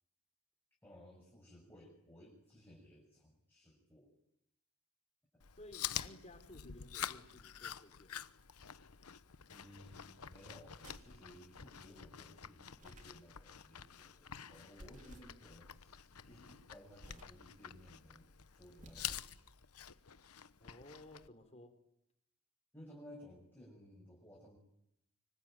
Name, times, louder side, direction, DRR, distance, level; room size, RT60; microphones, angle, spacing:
voice 1, 0.8-4.1 5.3-5.4 9.5-19.5 22.7-24.6, left 1 dB, 10° left, -2 dB, 6.6 m, -58 dB
Chewing mastication, 5.4-21.3, left 10 dB, 85° left, 1.1 m, -48 dB
voice 2, 5.6-8.2 20.6-21.7, left 1 dB, 30° left, 8 dB, 3.9 m, -56 dB
sound 1, 10.8-11.2 12.7-13.2 14.8-15.4 16.9-17.4 18.7-19.4, right 1 dB, 35° right, 3.3 m, -56 dB
25.5 x 25.0 x 9.2 m, 0.79 s
head